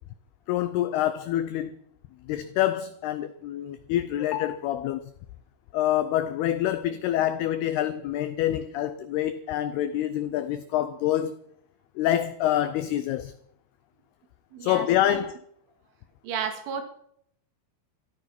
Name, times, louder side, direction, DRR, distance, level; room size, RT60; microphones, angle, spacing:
voice 1, 0.5-1.7 2.3-5.0 5.7-11.4 12.0-13.3 14.6-15.4, left 12 dB, 90° left, 2.2 m, -26 dB
voice 2, 14.5-15.2 16.2-16.8, right 7 dB, 85° right, 4.5 m, -33 dB
14.5 x 13.0 x 6.0 m
omnidirectional pair, 5.5 m